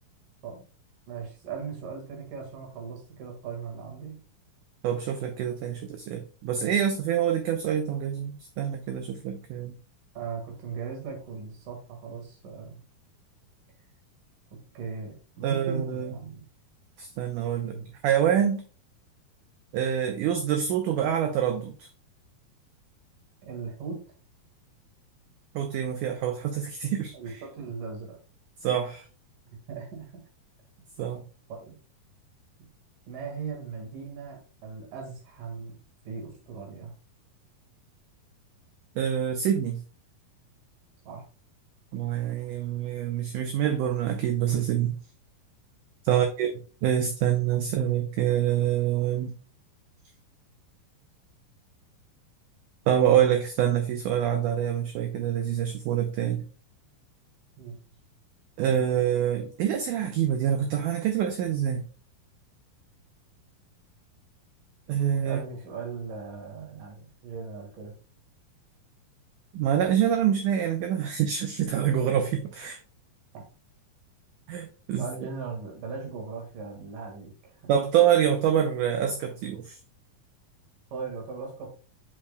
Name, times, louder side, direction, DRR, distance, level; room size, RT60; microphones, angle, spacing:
voice 1, 1.1-4.2 10.1-12.8 14.7-16.4 17.6-17.9 23.4-24.0 27.1-28.2 29.7-30.3 31.5-31.7 33.1-35.8 36.0-36.9 41.0-41.2 46.1-46.2 57.6-57.8 65.2-68.0 73.3-73.4 75.0-77.3 77.6-77.7 80.9-81.7, right 5 dB, 65° right, 1 dB, 3.2 m, -38 dB
voice 2, 4.8-9.8 15.4-16.1 17.0-17.8 18.0-18.6 19.7-21.9 25.6-27.1 28.6-29.0 31.0-31.2 39.0-39.8 41.9-45.0 46.1-46.5 46.8-49.3 52.9-56.5 58.6-61.9 64.9-65.4 69.5-72.8 74.5-75.1 77.7-79.8, right 9 dB, 85° right, 6 dB, 1.8 m, -26 dB
8.4 x 5.7 x 2.2 m, 0.38 s
omnidirectional pair, 4.3 m